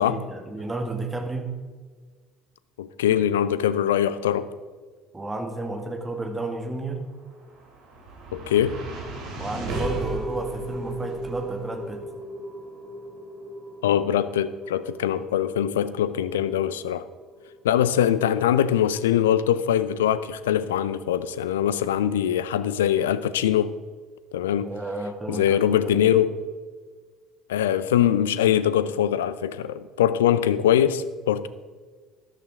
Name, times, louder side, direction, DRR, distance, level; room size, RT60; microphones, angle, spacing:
voice 1, 0.0-1.5 5.1-7.0 9.4-12.1 24.6-26.0, right 2 dB, 15° right, 2.0 m, -32 dB
voice 2, 2.8-4.5 8.3-8.8 13.8-17.0 17.6-23.7 24.3-24.7 25.3-26.3 27.5-31.5, left 10 dB, 70° left, 0.5 m, -22 dB
sound 1, 7.1-19.5, right 1 dB, 55° right, 3.0 m, -37 dB
13.5 x 11.5 x 3.6 m
figure-of-eight pair, 60°, 0 cm